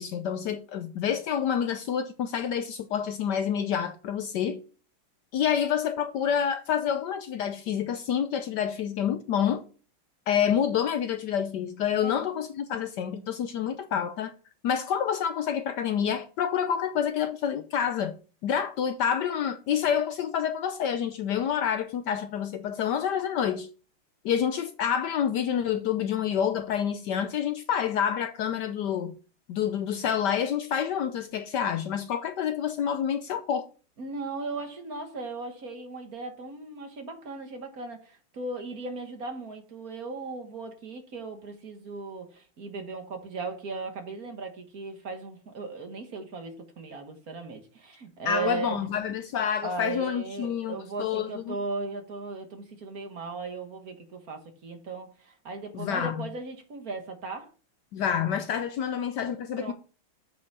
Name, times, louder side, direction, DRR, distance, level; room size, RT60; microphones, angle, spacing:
voice 1, 0.0-4.6 5.3-9.6 10.3-14.3 14.6-18.2 18.4-23.7 24.2-29.1 29.5-33.7 48.2-51.6 55.7-56.2 57.9-59.7, left 8 dB, 70° left, 1.1 m, -28 dB
voice 2, 34.0-48.9 49.6-57.5 59.6-59.7, right 3 dB, 50° right, 1.8 m, -37 dB
8.2 x 5.4 x 6.0 m
omnidirectional pair, 2.2 m